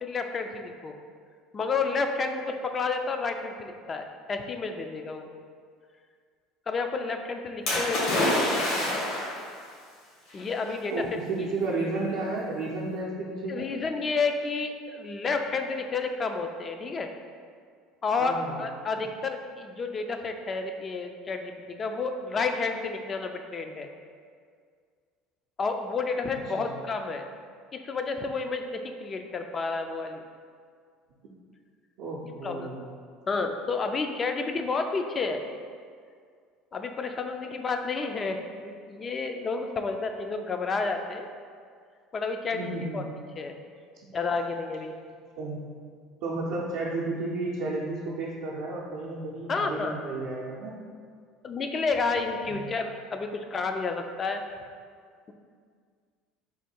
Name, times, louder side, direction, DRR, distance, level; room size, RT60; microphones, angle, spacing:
voice 1, 0.0-0.9 1.5-5.3 6.7-8.6 10.3-11.2 13.5-17.1 18.0-23.9 25.6-27.3 27.7-30.2 32.4-32.7 33.3-35.4 36.7-41.3 42.1-43.0 43.4-43.5 44.1-44.9 49.5-49.9 51.4-54.4, left 4 dB, 35° left, 5 dB, 0.3 m, -30 dB
Splash splatter, 7.7-9.5 10.4-10.5, left 1 dB, 75° left, 1.5 m, -26 dB
voice 2, 10.9-13.7 18.2-18.6 26.6-26.7 32.0-32.9 42.5-43.0 45.4-45.6 46.2-50.8 52.5-52.7, right 2 dB, 75° right, -6 dB, 0.5 m, -32 dB
3.5 x 2.2 x 4.3 m, 2.1 s
supercardioid pair, 85°, 0 cm